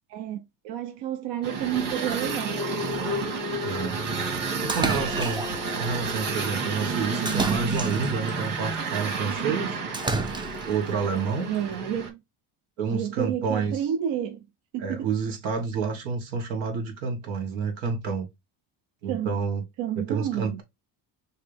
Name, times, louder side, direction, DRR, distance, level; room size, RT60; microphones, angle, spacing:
voice 1, 0.1-2.7 11.5-12.2 12.9-14.5 14.7-15.1 19.1-19.3 19.8-20.6, right 10 dB, 70° right, 0.7 m, -30 dB
sound 1, 1.4-12.1, right 3 dB, 45° right, 2.4 m, -30 dB
voice 2, 3.6-4.0 4.6-5.5 5.8-9.8 10.7-11.5 12.8-13.8 14.8-18.3 19.0-19.6 20.0-20.6, right 5 dB, 90° right, 1.8 m, -29 dB
Splash splatter, 4.7-5.7 7.3-8.3 9.9-10.8, right 3 dB, 10° right, 0.4 m, -29 dB
6.4 x 2.2 x 3.4 m
cardioid pair, 110°, 46 cm